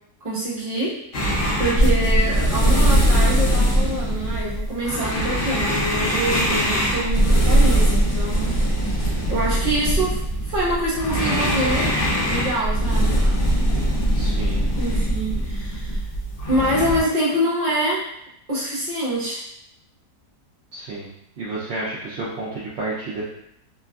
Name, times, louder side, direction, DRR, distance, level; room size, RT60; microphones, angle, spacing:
voice 1, 0.2-1.0 1.6-8.5 8.8-11.9 12.2-13.2 14.8-16.0 16.5-18.0 18.5-19.4, right 1 dB, 30° right, -8 dB, 0.8 m, -25 dB
sound 1, 1.1-17.0, right 1 dB, 70° left, 0.5 m, -21 dB
voice 2, 14.1-14.7 20.7-21.1 21.4-23.3, right 2 dB, 70° right, -7 dB, 0.6 m, -30 dB
3.0 x 2.3 x 2.3 m, 0.77 s
omnidirectional pair, 1.7 m